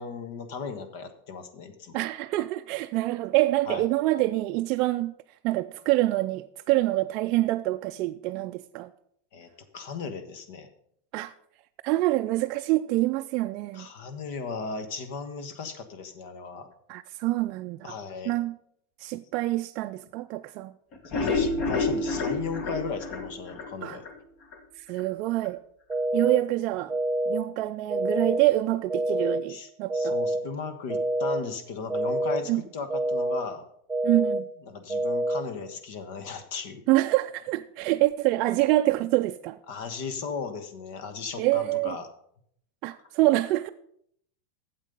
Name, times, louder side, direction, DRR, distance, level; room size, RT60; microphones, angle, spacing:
voice 1, 0.0-2.0 3.7-3.8 9.3-10.7 13.7-16.7 17.8-18.3 21.0-24.1 29.5-33.6 34.7-36.8 39.7-42.1, left 5 dB, 65° left, 1.3 m, -36 dB
voice 2, 1.9-5.1 5.4-8.9 11.1-11.3 11.8-13.9 16.9-17.9 18.3-18.5 19.0-20.7 23.8-24.0 24.8-25.6 26.1-26.9 27.3-30.2 32.5-32.6 34.0-34.5 36.9-39.6 41.4-42.0 42.8-43.7, right 17 dB, 50° right, 0.3 m, -26 dB
sound 1, 20.9-24.1 24.5-24.6 25.0-25.1 25.4-25.5, left 3 dB, 40° left, 1.6 m, -28 dB
sound 2, 25.9-26.4 26.9-27.4 27.9-28.4 28.9-29.4 29.9-30.4 30.9-31.4 31.9-32.4 32.9-33.4 33.9-34.4 34.9-35.4, right 1 dB, 15° right, 0.8 m, -26 dB
8.9 x 7.4 x 5.3 m
supercardioid pair, 130°, 0 cm